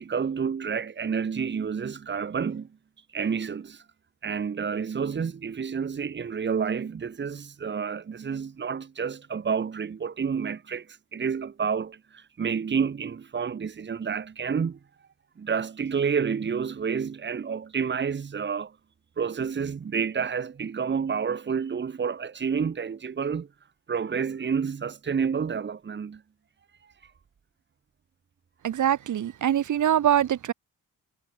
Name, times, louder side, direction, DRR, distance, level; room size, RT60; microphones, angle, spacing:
voice 1, 0.0-2.7 3.1-3.8 4.2-14.8 15.4-18.7 19.2-23.5 23.9-26.2, right 6 dB, 30° right, 4.7 m, -29 dB
voice 2, 28.6-30.5, right 10 dB, 60° right, 5.6 m, -23 dB
wide cardioid pair, 175°, 34 cm